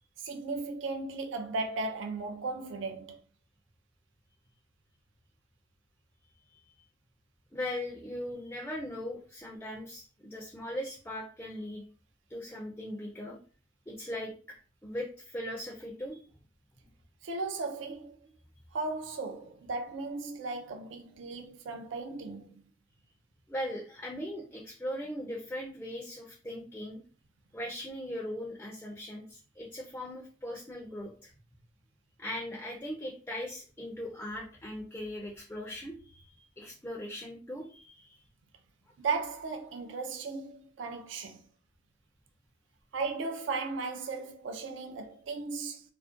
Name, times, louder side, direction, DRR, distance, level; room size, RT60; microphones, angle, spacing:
voice 1, 0.2-3.2 17.2-18.3 18.7-22.6 39.0-41.4 42.9-45.8, right 3 dB, 75° right, 0.4 m, -36 dB
voice 2, 6.4-6.8 7.5-11.8 12.3-13.4 13.9-14.6 14.8-16.2 23.5-27.0 27.5-31.3 32.2-38.2, left 1 dB, 10° left, 0.3 m, -39 dB
2.4 x 2.1 x 2.5 m
head